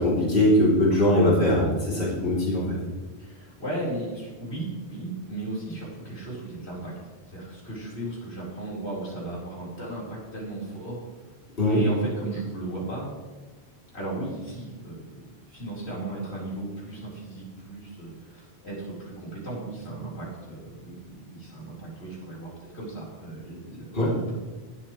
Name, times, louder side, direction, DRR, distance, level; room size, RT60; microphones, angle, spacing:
voice 1, 0.0-2.8 11.6-11.8 23.9-24.1, left 1 dB, 60° left, -6 dB, 3.5 m, -21 dB
voice 2, 3.2-6.9 7.3-11.0 11.7-13.1 13.9-15.2 15.4-23.9 24.1-24.3, right 2 dB, 80° left, -6 dB, 4.8 m, -36 dB
19.5 x 8.7 x 3.2 m, 1.3 s
omnidirectional pair, 1.1 m